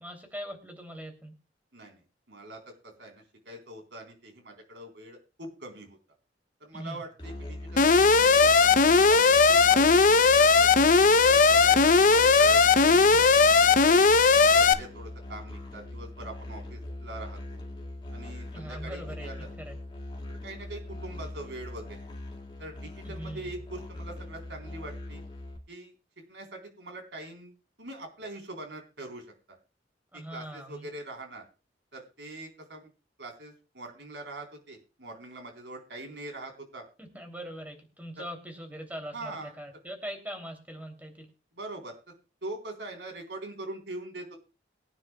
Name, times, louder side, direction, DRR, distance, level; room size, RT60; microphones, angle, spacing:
voice 1, 0.0-1.3 6.7-7.0 13.1-13.3 18.5-19.8 23.0-23.6 30.1-30.9 37.0-41.3, equal, 10° right, 4 dB, 3.1 m, -41 dB
voice 2, 1.7-6.0 6.6-10.8 11.2-13.2 13.8-14.1 14.5-17.6 18.1-19.5 20.3-22.0 22.6-25.2 25.7-25.9 26.3-27.5 27.8-29.3 30.1-31.4 31.9-32.9 33.2-36.8 39.1-39.5 41.5-42.1 42.4-44.4, right 2 dB, 80° right, 3 dB, 3.9 m, -43 dB
Musical instrument, 7.2-25.6, left 1 dB, 30° left, 2.2 m, -41 dB
Alarm, 7.8-14.7, left 4 dB, 45° left, 0.7 m, -18 dB
22.5 x 9.8 x 2.3 m, 0.32 s
head